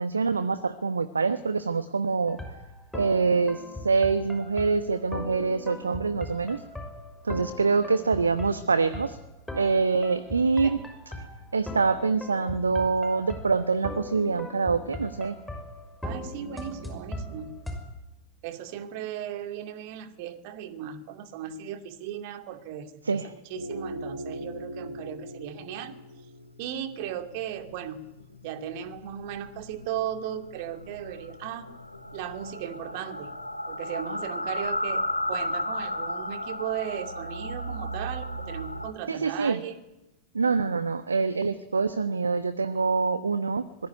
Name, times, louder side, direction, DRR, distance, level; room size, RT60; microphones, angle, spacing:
voice 1, 0.0-2.4 2.9-6.6 7.2-9.2 9.6-10.8 11.5-15.4 23.0-23.3 39.1-39.6 40.3-43.6, right 4 dB, 75° right, 14 dB, 1.0 m, -25 dB
sound 1, 2.3-17.8, left 1 dB, 5° left, 5.8 m, -39 dB
voice 2, 16.0-17.6 18.4-26.0 26.6-28.0 28.4-31.7 32.1-33.3 33.7-39.8, right 10 dB, 45° right, 8 dB, 2.5 m, -36 dB
sound 2, 23.5-38.9, left 1 dB, 85° left, 2.2 m, -35 dB
25.0 x 20.5 x 9.8 m, 0.96 s
figure-of-eight pair, 90°, 0 cm